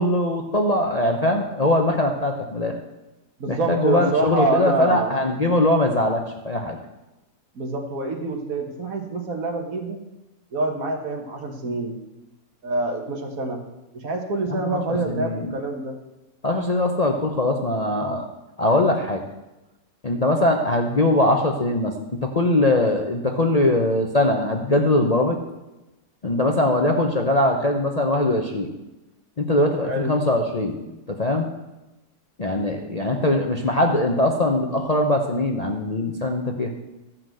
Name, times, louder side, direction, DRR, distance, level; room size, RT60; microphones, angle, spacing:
voice 1, 0.0-2.7 3.5-6.8 14.5-15.5 16.4-18.3 18.6-19.2 20.0-21.9 22.2-25.4 26.2-28.7 29.4-30.8 31.1-31.5 32.4-36.7, left 1 dB, 35° left, 2 dB, 0.8 m, -21 dB
voice 2, 3.4-5.2 7.6-10.0 10.5-12.0 12.6-13.6 13.9-16.0 29.9-30.2, right 3 dB, 65° right, 3 dB, 1.8 m, -26 dB
13.5 x 5.9 x 7.7 m, 1.0 s
omnidirectional pair, 1.6 m